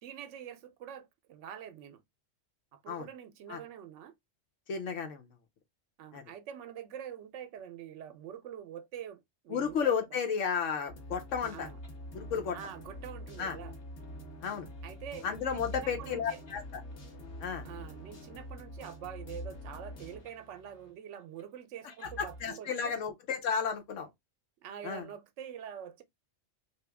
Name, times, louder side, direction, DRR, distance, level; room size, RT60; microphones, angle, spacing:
voice 1, 0.0-2.0 2.7-4.1 6.0-9.9 11.5-11.8 12.5-13.7 14.8-16.4 17.6-22.9 24.6-26.0, right 9 dB, 80° right, 0.9 m, -45 dB
voice 2, 4.7-5.3 6.1-6.2 9.5-11.7 12.1-12.6 13.4-13.6 14.4-14.7 15.2-16.8 17.4-17.7 22.2-24.1 24.8-25.0, left 6 dB, 85° left, 1.1 m, -33 dB
sound 1, 10.9-20.9 21.4-21.5 21.9-22.4, equal, 55° left, 1.1 m, -46 dB
2.9 x 2.6 x 3.3 m
omnidirectional pair, 1.3 m